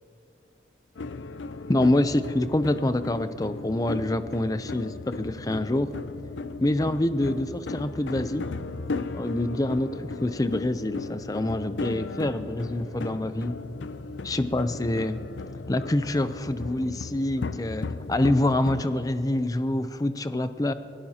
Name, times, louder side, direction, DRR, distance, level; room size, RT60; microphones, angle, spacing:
sound 1, 1.0-19.0, left 3 dB, 85° left, 0.6 m, -36 dB
voice 1, 1.7-5.9 6.6-8.5 9.1-13.6 14.2-15.2 15.7-20.7, left 1 dB, 20° left, 11 dB, 0.5 m, -26 dB
26.5 x 17.5 x 2.9 m, 2.7 s
head